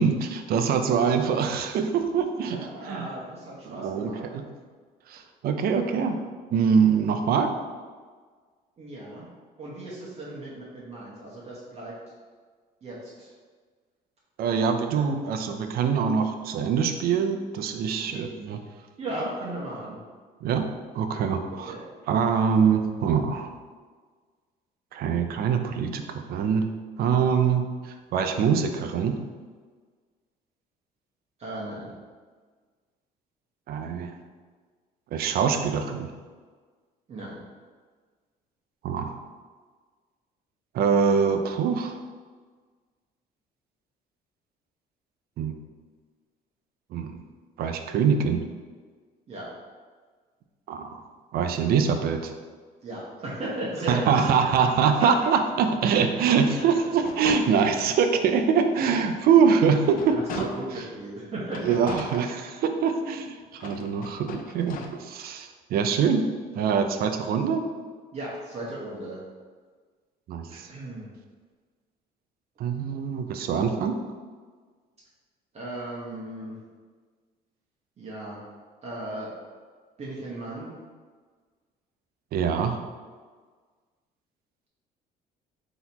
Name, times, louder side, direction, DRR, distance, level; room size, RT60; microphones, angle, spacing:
voice 1, 0.0-3.1 3.7-4.4 5.1-6.2 6.5-7.5 14.4-18.6 20.4-20.7 20.9-21.7 22.1-23.5 24.9-26.7 27.0-29.2 33.7-34.1 35.1-36.1 38.8-39.1 40.7-42.0 45.4-45.6 46.9-47.2 47.6-48.4 50.7-51.0 51.3-52.3 53.9-60.5 61.6-66.3 66.5-67.6 70.3-70.7 72.6-74.0 82.3-82.8, right 6 dB, 65° right, 6 dB, 0.5 m, -24 dB
voice 2, 2.4-4.2 8.8-9.2 9.6-11.9 12.8-13.3 14.9-15.0 18.0-18.2 19.0-20.0 21.6-21.8 31.4-31.9 37.1-37.4 49.3-49.5 52.8-54.2 56.6-56.9 60.0-61.7 68.1-69.2 70.5-71.1 75.5-76.5 78.0-78.4 78.8-79.3 80.0-80.7, right 1 dB, 40° right, -6 dB, 1.0 m, -36 dB
sound 1, 56.4-58.1 58.6-58.7 59.1-60.9 61.5-63.0 63.5-64.9, left 4 dB, 55° left, 0.5 m, -40 dB
3.9 x 2.9 x 4.0 m, 1.5 s
cardioid pair, 110°, 17 cm